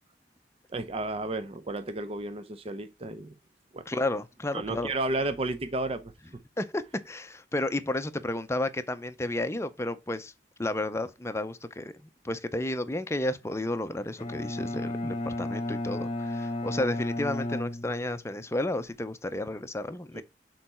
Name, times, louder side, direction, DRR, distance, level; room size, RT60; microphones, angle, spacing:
voice 1, 0.7-3.3 3.7-3.9 4.5-6.1 20.1-20.2, right 2 dB, 35° right, 0.6 m, -32 dB
voice 2, 3.9-4.9 6.6-10.3 10.6-20.2, left 1 dB, 15° left, 0.6 m, -32 dB
Bowed string instrument, 14.2-18.4, left 1 dB, 30° left, 1.0 m, -33 dB
6.7 x 4.0 x 4.3 m
head